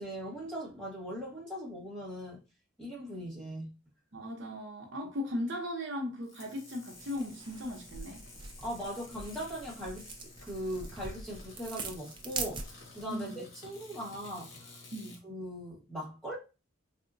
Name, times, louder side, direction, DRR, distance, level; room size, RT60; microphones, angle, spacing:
voice 1, 0.0-2.4 2.8-3.7 8.6-10.1 10.4-14.6 15.2-16.4, equal, 5° left, 1.4 m, -40 dB
voice 2, 4.1-8.3 13.1-13.5 14.9-15.2, left 1 dB, 60° right, 0.6 m, -37 dB
sound 1, 6.2-15.2, left 3 dB, 70° left, 1.0 m, -52 dB
sound 2, 6.9-13.1, right 4 dB, 25° right, 0.3 m, -43 dB
3.6 x 2.1 x 2.5 m
head